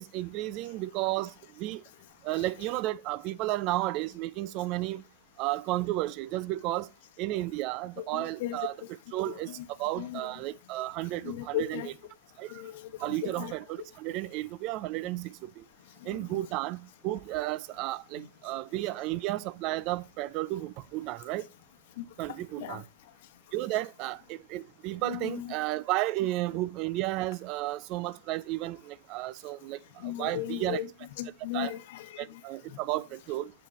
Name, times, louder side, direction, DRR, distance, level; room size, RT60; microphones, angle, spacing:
voice 1, 0.0-1.8 2.2-5.0 5.4-6.9 7.2-8.7 9.1-9.5 9.8-11.9 12.4-12.6 13.0-15.6 16.0-21.5 22.2-22.8 23.5-30.8 31.5-31.7 32.2-33.5, right 16 dB, 40° right, 0.3 m, -33 dB
voice 2, 8.0-8.9 9.3-10.3 11.1-11.9 12.5-13.8 16.0-16.4 18.1-18.3 22.0-22.8 25.0-25.5 30.0-30.9 31.2-32.4 32.7-32.8, left 13 dB, 60° left, 1.0 m, -38 dB
7.4 x 6.9 x 3.0 m
supercardioid pair, 145°, 0 cm